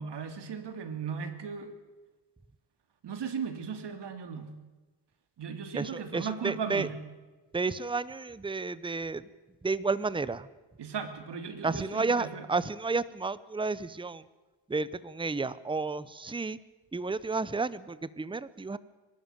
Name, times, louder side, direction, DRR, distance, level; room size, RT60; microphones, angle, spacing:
voice 1, 0.0-1.7 3.0-4.5 5.4-7.0 10.8-12.4, right 6 dB, 65° right, 8 dB, 2.9 m, -37 dB
voice 2, 5.7-6.9 7.5-9.2 9.6-10.5 11.6-14.3 14.7-16.6 16.9-18.8, right 4 dB, 10° right, 17 dB, 0.8 m, -31 dB
22.5 x 13.0 x 9.1 m, 1.2 s
cardioid pair, 95°, 44 cm